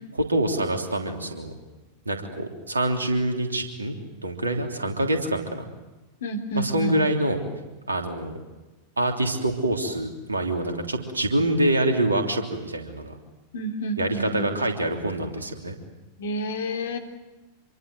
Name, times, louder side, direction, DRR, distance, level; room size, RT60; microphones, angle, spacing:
voice 1, 0.3-1.5 2.0-3.9 4.2-5.7 6.5-7.4 7.9-8.4 9.0-13.2 14.0-15.7, right 1 dB, 75° right, 4 dB, 3.3 m, -25 dB
voice 2, 6.2-7.0 13.5-14.5 16.2-17.0, equal, 60° left, 5 dB, 3.3 m, -30 dB
27.0 x 23.5 x 7.9 m, 1.1 s
figure-of-eight pair, 90°, 0 cm